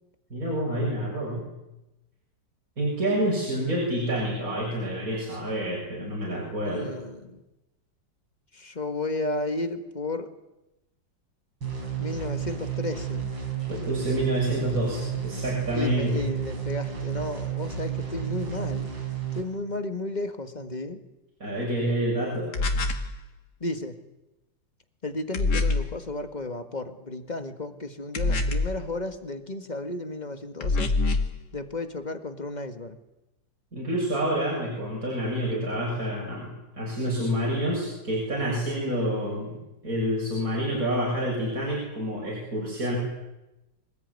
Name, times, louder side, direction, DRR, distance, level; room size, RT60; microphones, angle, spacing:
voice 1, 0.3-1.5 2.8-6.9 13.7-16.3 21.4-22.5 33.7-43.0, equal, 45° right, -4 dB, 7.4 m, -28 dB
voice 2, 6.7-7.4 8.5-10.3 12.0-13.2 15.7-18.9 19.3-21.0 23.6-24.0 25.0-31.0 31.5-33.0, left 2 dB, 25° left, 8 dB, 1.8 m, -33 dB
sound 1, 11.6-19.4, right 8 dB, 80° right, 5.5 m, -32 dB
sound 2, 22.5-23.1 25.3-25.9 28.1-28.8 30.6-31.3, left 3 dB, 60° left, 2.5 m, -25 dB
25.5 x 20.0 x 9.7 m, 0.96 s
omnidirectional pair, 2.0 m